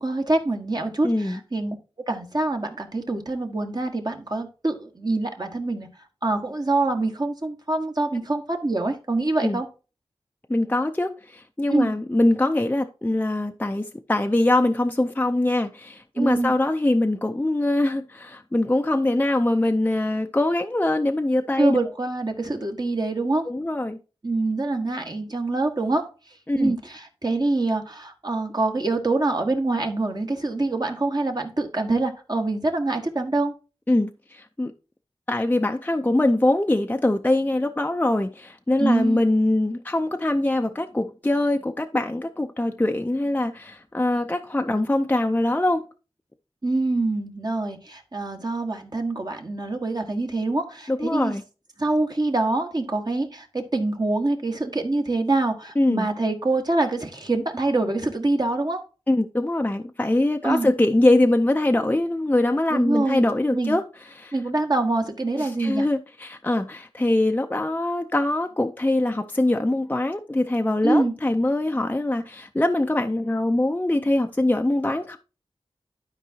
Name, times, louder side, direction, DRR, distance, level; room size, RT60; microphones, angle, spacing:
voice 1, 0.0-1.7 2.1-5.9 6.2-9.7 11.7-11.9 16.2-16.5 21.6-23.5 24.2-26.1 26.6-33.5 38.8-39.2 46.6-51.3 51.8-58.8 60.4-60.7 62.7-63.2 63.5-63.8 64.3-65.9 70.8-71.1, right 2 dB, 40° right, 1.4 m, -25 dB
voice 2, 1.0-1.4 9.4-9.6 10.5-21.8 23.5-24.0 26.5-26.7 33.9-34.7 35.3-45.8 50.9-51.4 55.8-56.1 59.1-63.8 64.1-64.3 65.4-75.2, left 1 dB, 15° left, 0.5 m, -23 dB
12.0 x 4.6 x 2.8 m
cardioid pair, 45°, 10 cm